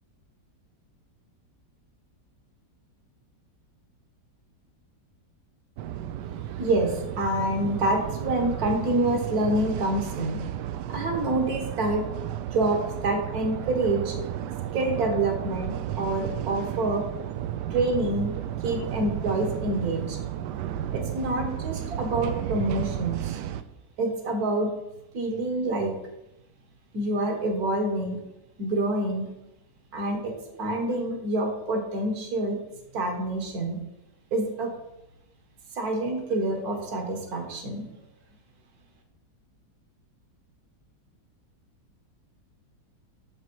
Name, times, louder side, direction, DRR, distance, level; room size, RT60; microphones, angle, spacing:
sound 1, 5.8-23.6, right 11 dB, 80° right, 1.2 m, -33 dB
voice 1, 6.6-10.4 10.9-12.0 12.5-14.2 14.7-17.1 17.7-18.3 18.6-20.2 20.9-23.4 24.0-24.7 25.1-25.9 26.9-28.2 28.6-29.3 29.9-32.6 32.9-33.8 34.3-34.7 35.7-37.9, right 2 dB, 60° right, 3 dB, 2.0 m, -27 dB
9.1 x 7.0 x 4.6 m, 0.88 s
omnidirectional pair, 1.9 m